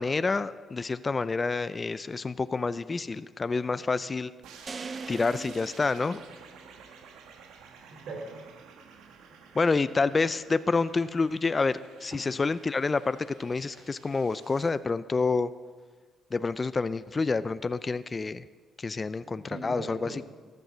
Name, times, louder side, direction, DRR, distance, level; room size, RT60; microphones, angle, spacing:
voice 1, 0.0-4.3 5.1-6.2 9.5-15.5 16.3-18.4 18.8-20.2, left 4 dB, 30° left, 14 dB, 0.4 m, -28 dB
sound 1, 4.4-14.7, right 6 dB, 90° right, 1.4 m, -52 dB
sound 2, 4.7-7.0, right 4 dB, 35° right, 0.5 m, -41 dB
voice 2, 7.9-8.4 12.1-12.3 19.2-20.2, right 2 dB, 75° right, 2 dB, 3.6 m, -41 dB
14.5 x 10.5 x 6.3 m, 1.5 s
cardioid pair, 90°, 0 cm